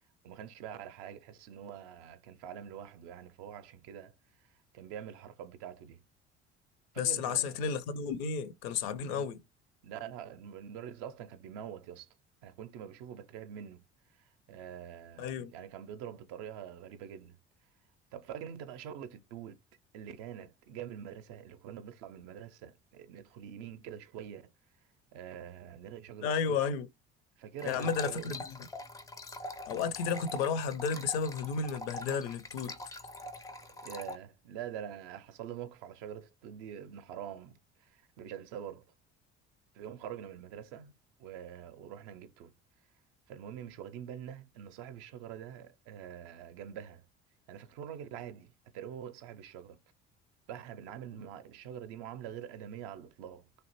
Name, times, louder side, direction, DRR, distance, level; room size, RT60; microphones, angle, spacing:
voice 1, 0.2-4.5 4.7-6.0 6.9-7.6 9.1-9.3 9.8-12.1 12.4-13.9 14.2-17.4 18.1-19.6 19.9-24.5 25.1-26.6 27.4-28.4 33.6-38.8 39.7-40.9 41.2-42.5 43.3-47.0 47.5-49.8 50.5-53.5, right 9 dB, 55° right, 0.5 m, -45 dB
voice 2, 7.0-9.4 15.2-15.5 26.2-26.9 27.6-28.5 29.7-32.8, left 6 dB, 60° left, 0.5 m, -32 dB
sound 1, 27.6-34.2, left 1 dB, 10° left, 0.4 m, -44 dB
3.2 x 2.4 x 2.9 m
figure-of-eight pair, 55°, 34 cm